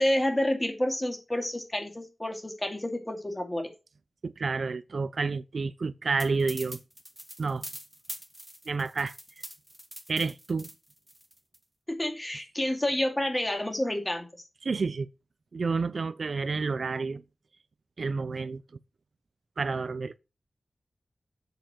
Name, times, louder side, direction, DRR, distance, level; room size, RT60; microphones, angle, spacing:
voice 1, 0.0-3.7 11.9-14.3, left 1 dB, 15° left, 2.4 m, -29 dB
voice 2, 4.2-6.8 7.4-7.7 8.7-9.2 10.1-10.7 14.6-15.1 15.5-17.2 18.0-18.6 19.6-20.2, right 4 dB, 65° right, 0.5 m, -30 dB
sound 1, 6.2-11.6, equal, ahead, 1.4 m, -43 dB
7.9 x 6.8 x 4.4 m
wide cardioid pair, 105°, 0 cm